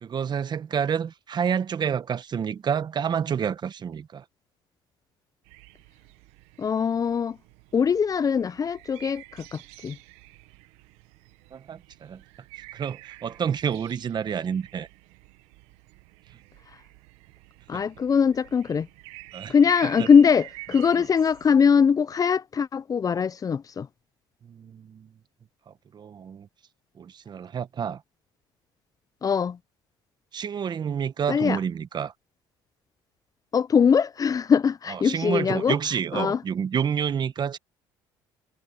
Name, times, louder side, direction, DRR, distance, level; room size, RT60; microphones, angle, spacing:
voice 1, 0.0-4.2 11.5-12.2 12.5-14.9 17.7-17.8 19.3-19.5 19.8-20.1 24.4-25.1 25.7-26.5 27.0-28.0 30.3-32.1 34.9-37.6, right 7 dB, 45° right, 1.3 m, -29 dB
sound 1, 5.5-21.5, right 19 dB, 80° right, 1.3 m, -48 dB
voice 2, 6.6-7.4 7.7-10.0 17.7-18.9 19.5-23.9 29.2-29.6 31.3-31.6 33.5-35.7 36.1-36.4, left 6 dB, 35° left, 0.6 m, -22 dB
supercardioid pair, 75°, 11 cm